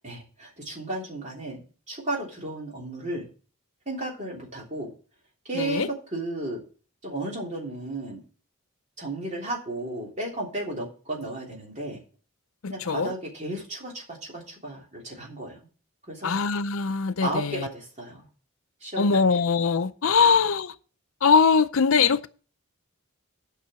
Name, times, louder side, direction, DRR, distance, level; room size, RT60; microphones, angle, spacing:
voice 1, 0.0-3.3 3.8-4.9 5.4-6.6 7.0-8.2 9.0-12.0 12.7-15.6 16.1-16.4 17.2-18.3 18.8-19.2 20.2-20.3, right 2 dB, 30° right, 3.2 m, -34 dB
voice 2, 5.5-5.9 12.6-13.1 16.2-17.7 19.0-20.8 21.2-22.3, left 5 dB, 65° left, 0.5 m, -22 dB
8.7 x 5.6 x 7.4 m
head